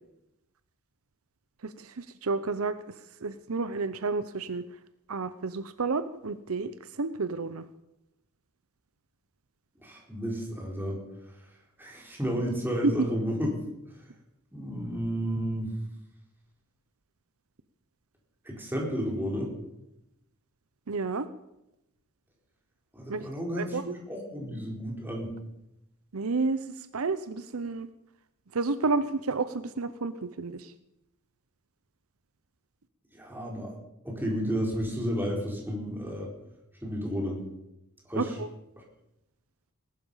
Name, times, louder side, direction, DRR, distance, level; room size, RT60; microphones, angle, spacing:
voice 1, 1.6-2.9 3.2-4.6 5.1-6.7 7.0-7.6 20.9-21.3 23.1-23.3 23.5-24.0 26.1-26.6 26.9-27.9 28.5-30.7 38.1-38.5, right 4 dB, 70° right, 13 dB, 0.7 m, -31 dB
voice 2, 9.8-11.0 11.8-13.6 13.9-14.0 14.5-15.7 18.4-19.5 22.9-25.3 33.1-33.8 34.0-36.3 36.8-37.4 38.1-38.4 38.8-38.9, equal, 10° right, -1 dB, 4.4 m, -32 dB
19.5 x 12.0 x 5.7 m, 0.87 s
head